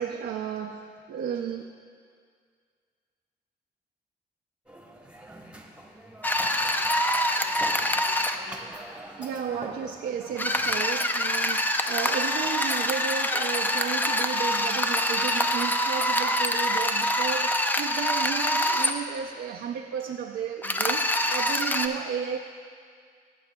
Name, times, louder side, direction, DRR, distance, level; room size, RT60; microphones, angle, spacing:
voice 1, 0.0-1.6 8.9-22.4, right 8 dB, 80° right, 1 dB, 0.4 m, -33 dB
sound 1, 4.7-10.8, right 1 dB, 5° right, 1.0 m, -44 dB
sound 2, 6.2-8.4 10.4-18.9 20.6-21.9, left 1 dB, 10° left, 0.5 m, -25 dB
17.0 x 7.7 x 2.2 m, 2.1 s
cardioid pair, 80°, 18 cm